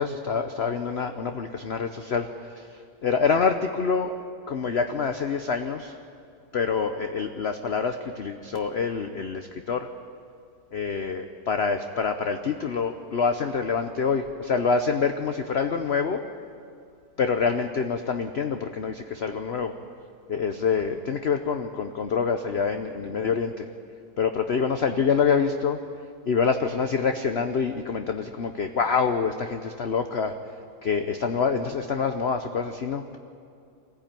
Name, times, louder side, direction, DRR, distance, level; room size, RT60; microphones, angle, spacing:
voice 1, 0.0-2.3 2.6-4.2 4.5-6.0 6.5-9.9 10.7-16.2 17.2-19.8 20.3-23.7 24.2-25.8 26.3-30.3 30.8-33.2, left 5 dB, 50° left, 6 dB, 0.9 m, -26 dB
25.0 x 15.5 x 9.1 m, 2.4 s
omnidirectional pair, 1.8 m